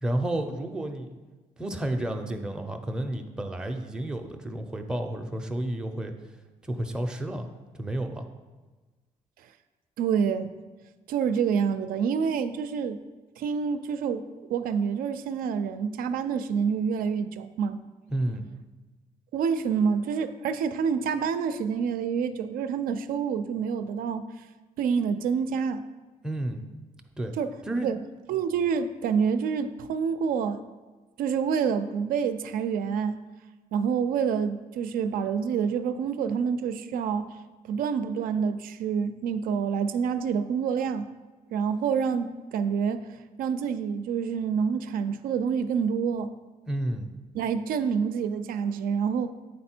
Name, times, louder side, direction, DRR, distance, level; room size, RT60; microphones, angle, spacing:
voice 1, 0.0-1.2 1.6-6.1 6.6-7.5 7.7-8.3 18.1-18.5 26.2-26.6 27.2-27.4 27.7-27.9 46.7-47.1, right 1 dB, 5° right, 4 dB, 0.4 m, -31 dB
voice 2, 10.0-10.5 11.1-13.0 13.4-17.8 19.3-24.2 24.8-25.8 27.4-27.5 27.8-28.0 28.3-30.6 31.2-33.2 33.7-37.4 37.7-41.1 41.5-43.1 43.4-46.3 47.3-49.3, right 6 dB, 90° right, 10 dB, 0.4 m, -27 dB
8.5 x 4.2 x 4.3 m, 1.3 s
cardioid pair, 165°, 14 cm